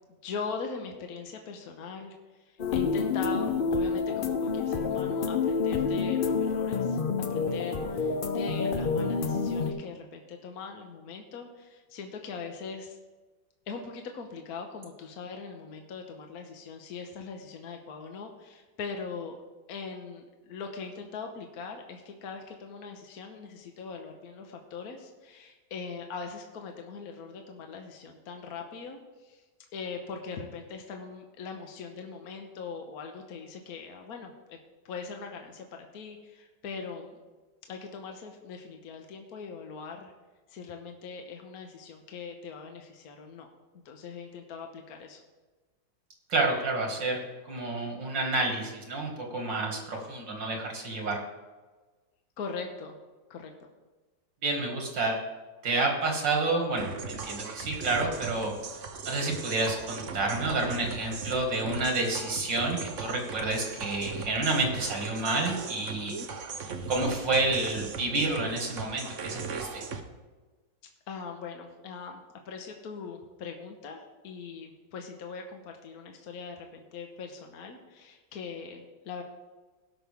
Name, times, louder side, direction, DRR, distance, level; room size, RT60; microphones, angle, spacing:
voice 1, 0.1-7.0 7.3-13.0 13.7-19.4 19.7-29.4 29.7-34.6 34.8-37.2 37.7-40.1 40.5-43.5 43.8-45.2 52.4-53.0 53.3-53.5 71.1-79.2, left 5 dB, 60° left, 3 dB, 1.4 m, -41 dB
sound 1, 2.6-9.7, left 5 dB, 85° left, 0.4 m, -28 dB
voice 2, 46.3-47.2 47.5-51.2 54.4-55.2 55.6-58.5 59.1-66.1 66.9-69.8, right 2 dB, 85° right, 1 dB, 2.7 m, -29 dB
sound 2, 56.8-70.0, right 4 dB, 50° right, 1.0 m, -38 dB
17.5 x 6.2 x 3.5 m, 1.3 s
omnidirectional pair, 1.9 m